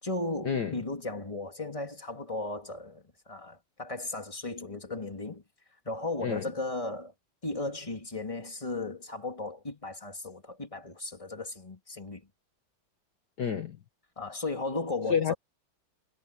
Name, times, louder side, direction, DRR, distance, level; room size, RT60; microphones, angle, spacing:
voice 1, 0.0-5.4 5.8-7.1 7.4-12.3 14.2-15.3, left 2 dB, 15° left, 2.8 m, -36 dB
voice 2, 13.4-13.8 15.1-15.3, left 7 dB, 55° left, 1.8 m, -29 dB
omnidirectional pair, 2.3 m